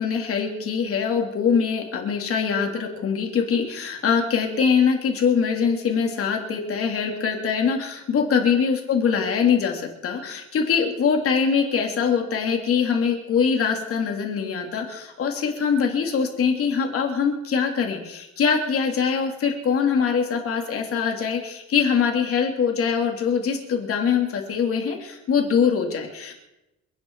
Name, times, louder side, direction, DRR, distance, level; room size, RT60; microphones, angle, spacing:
voice 1, 0.0-26.3, left 6 dB, 50° left, 2 dB, 3.0 m, -23 dB
28.5 x 9.5 x 4.7 m, 0.95 s
cardioid pair, 175°, 30 cm